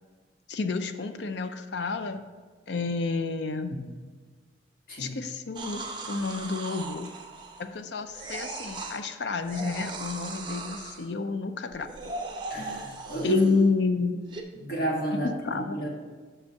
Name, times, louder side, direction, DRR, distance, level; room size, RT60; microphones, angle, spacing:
voice 1, 0.5-2.2 2.7-3.7 5.0-7.1 7.6-11.9 13.2-14.2 15.2-15.8, left 4 dB, 70° left, 9 dB, 0.5 m, -30 dB
sound 1, 5.5-7.8 8.1-9.0 9.4-11.1 11.7-13.7 14.3-14.4, right 3 dB, 25° right, 0.7 m, -38 dB
voice 2, 12.5-13.4 14.6-15.3 15.5-15.9, equal, 55° left, -2 dB, 1.7 m, -30 dB
6.1 x 5.3 x 5.6 m, 1.5 s
head